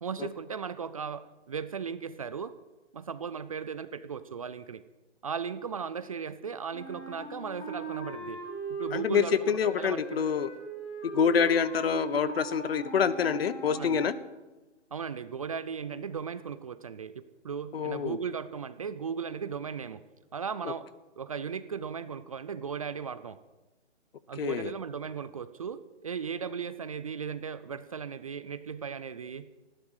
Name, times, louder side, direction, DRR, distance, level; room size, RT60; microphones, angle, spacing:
voice 1, 0.0-2.6 2.9-4.8 5.2-8.4 8.7-10.2 13.7-14.0 14.9-20.0 20.3-20.9 21.2-23.4 24.3-29.5, right 6 dB, 30° right, 14 dB, 0.5 m, -37 dB
Wind instrument woodwind instrument, 6.7-14.4, right 3 dB, 80° left, 6.9 m, -40 dB
voice 2, 8.9-10.5 11.0-14.1 17.7-18.2 20.6-20.7 24.4-24.7, left 7 dB, 55° left, 16 dB, 1.1 m, -27 dB
18.5 x 16.0 x 4.9 m, 1.1 s
hypercardioid pair, 150°, 36 cm